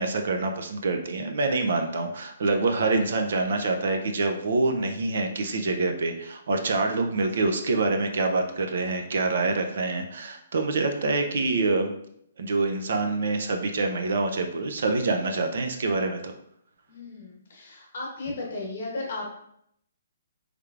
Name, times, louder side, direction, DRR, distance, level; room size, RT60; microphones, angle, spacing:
voice 1, 0.0-11.9 12.4-16.3, right 3 dB, 55° right, 5 dB, 0.4 m, -26 dB
voice 2, 16.9-19.3, left 2 dB, 50° left, -2 dB, 1.1 m, -35 dB
3.3 x 3.1 x 2.4 m, 0.70 s
hypercardioid pair, 175°, 0 cm